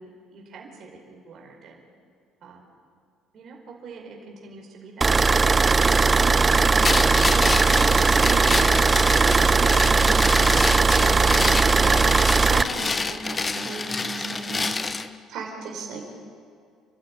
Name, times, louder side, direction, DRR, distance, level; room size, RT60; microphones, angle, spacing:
voice 1, 0.0-1.8 2.4-2.6 3.3-5.3 12.5-12.9, right 3 dB, 55° right, 0 dB, 4.9 m, -45 dB
sound 1, 5.0-12.6, right 4 dB, 25° right, 0.7 m, -18 dB
voice 2, 6.2-6.8 7.3-8.5 9.1-10.0 10.7-14.7 15.3-16.0, right 4 dB, 75° right, 0 dB, 5.0 m, -36 dB
sound 2, 6.8-15.1, left 4 dB, 25° left, 1.1 m, -28 dB
29.0 x 12.5 x 10.0 m, 2.3 s
supercardioid pair, 90°, 0 cm